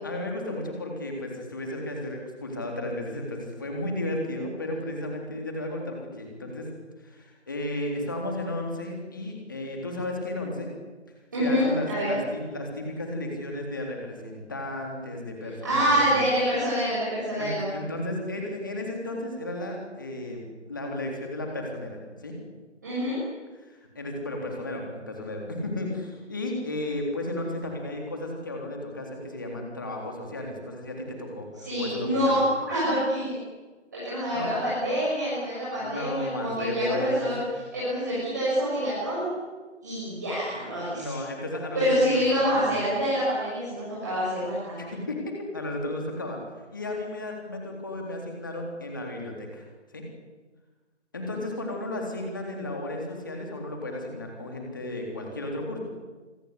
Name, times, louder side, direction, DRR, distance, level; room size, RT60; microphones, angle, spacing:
voice 1, 0.0-6.7 7.0-10.7 11.4-16.1 17.4-22.4 23.7-31.5 31.8-32.4 34.3-34.6 35.8-37.3 40.9-42.7 44.8-46.4 46.7-49.7 49.9-50.0 51.1-55.8, left 1 dB, 15° left, 1 dB, 3.7 m, -33 dB
voice 2, 11.3-12.2 15.6-17.7 22.8-23.2 31.6-33.2 33.9-37.4 37.7-39.4 39.8-41.2 41.7-44.9, equal, 15° right, -9 dB, 6.6 m, -26 dB
26.0 x 24.5 x 8.3 m, 1.3 s
figure-of-eight pair, 175°, 36 cm